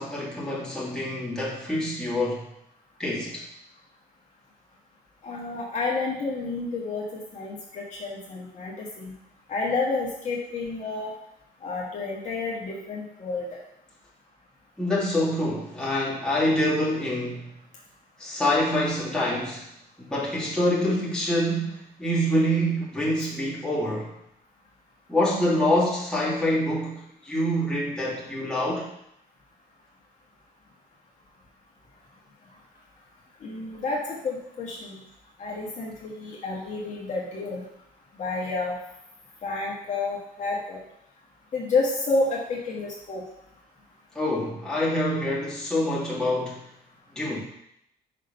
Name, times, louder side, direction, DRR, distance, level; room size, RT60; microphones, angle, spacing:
voice 1, 0.0-2.5 3.0-3.5 14.8-17.5 18.2-19.6 20.0-24.1 25.1-28.9 44.1-46.6 47.1-47.4, left 1 dB, 5° left, -7 dB, 2.2 m, -26 dB
voice 2, 5.2-7.0 7.3-9.1 9.5-11.1 11.6-13.6 15.8-15.9 23.2-23.3 33.4-34.9 35.4-37.6 38.2-38.8 39.4-40.8 41.5-43.2, left 3 dB, 45° left, -3 dB, 1.4 m, -30 dB
5.5 x 3.8 x 5.4 m, 0.76 s
cardioid pair, 110°, 17 cm